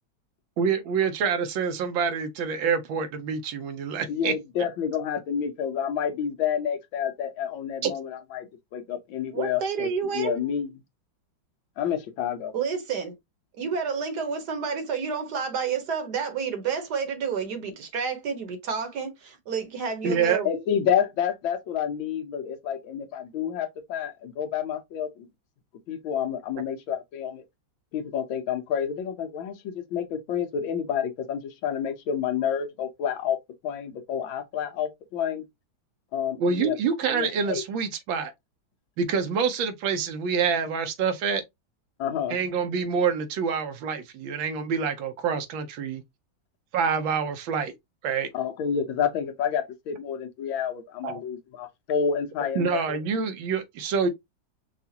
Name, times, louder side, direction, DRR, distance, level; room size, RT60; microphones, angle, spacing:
voice 1, 0.6-4.3 7.8-7.9 20.0-20.4 36.4-38.3 39.0-41.4 42.3-46.0 46.7-47.7 48.0-48.3 51.0-51.2 52.5-54.1, right 6 dB, 75° right, 1.5 m, -26 dB
voice 2, 4.1-10.7 11.8-12.5 20.4-25.3 25.9-27.4 27.9-33.4 33.6-35.4 36.1-36.8 37.0-37.6 42.0-42.4 48.3-53.0, left 8 dB, 75° left, 1.5 m, -29 dB
voice 3, 9.3-10.4 12.5-13.1 13.6-20.5, right 6 dB, 60° right, 1.4 m, -30 dB
5.8 x 2.4 x 2.8 m
omnidirectional pair, 2.2 m